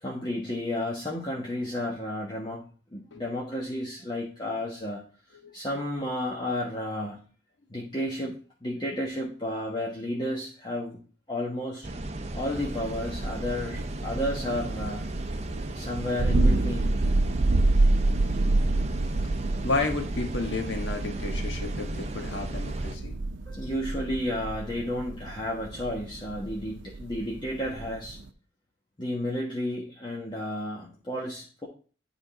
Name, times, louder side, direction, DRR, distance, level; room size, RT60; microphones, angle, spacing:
voice 1, 0.0-2.6 2.9-5.0 5.5-7.2 7.7-8.4 8.6-11.0 11.3-11.9 12.3-15.1 15.7-17.0 23.5-28.2 29.0-31.7, left 1 dB, 25° left, -4 dB, 1.2 m, -32 dB
sound 1, 11.8-22.9, right 1 dB, 35° right, 0.7 m, -35 dB
Thunder, 12.5-28.3, right 2 dB, 85° right, 0.6 m, -29 dB
voice 2, 19.6-23.1, left 3 dB, 75° left, 4 dB, 1.3 m, -31 dB
9.7 x 3.7 x 4.9 m, 0.39 s
head